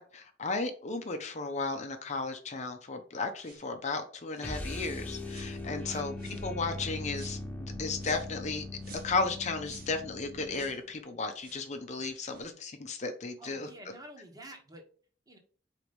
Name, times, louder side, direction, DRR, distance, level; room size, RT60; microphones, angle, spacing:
voice 1, 0.0-6.1 6.4-8.6 9.0-13.7, left 3 dB, 40° left, 6 dB, 0.7 m, -34 dB
sound 1, 3.4-3.7 4.3-4.6 5.3-5.5 6.2-6.5 7.1-7.4 8.0-8.3 8.8-9.2 9.6-10.0 10.5-10.8 11.4-11.7 12.2-12.5, right 4 dB, 55° right, 1.4 m, -52 dB
sound 2, 4.4-10.8, left 2 dB, 10° left, 1.4 m, -40 dB
voice 2, 13.4-14.8 15.3-15.4, right 1 dB, 20° right, 3 dB, 1.3 m, -48 dB
4.7 x 4.1 x 5.3 m, 0.43 s
head